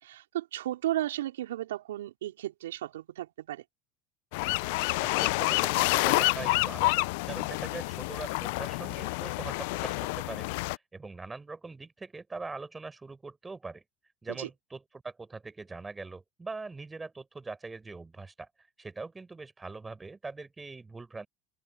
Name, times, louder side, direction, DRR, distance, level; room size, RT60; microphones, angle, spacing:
voice 1, 0.0-3.6 14.3-14.5, right 13 dB, 85° right, 3.9 m, -34 dB
sound 1, 4.3-10.8, left 25 dB, 70° left, 0.4 m, -28 dB
voice 2, 5.0-13.8 14.2-18.5 18.8-21.3, right 3 dB, 15° right, 4.9 m, -42 dB
hypercardioid pair, 85°, 0 cm